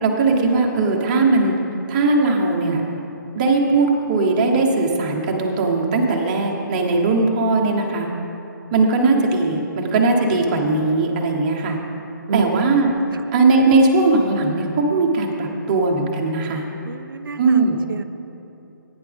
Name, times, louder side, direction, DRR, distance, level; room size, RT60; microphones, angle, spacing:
voice 1, 0.0-1.6 1.9-2.8 3.3-8.1 8.7-11.8 12.3-12.9 13.3-16.6 17.4-17.8, right 3 dB, 25° right, 0 dB, 1.1 m, -19 dB
voice 2, 12.3-12.6 13.1-13.2 16.8-17.6 17.9-18.0, right 6 dB, 90° right, 9 dB, 0.5 m, -27 dB
15.5 x 9.7 x 3.5 m, 3.0 s
hypercardioid pair, 165°, 11 cm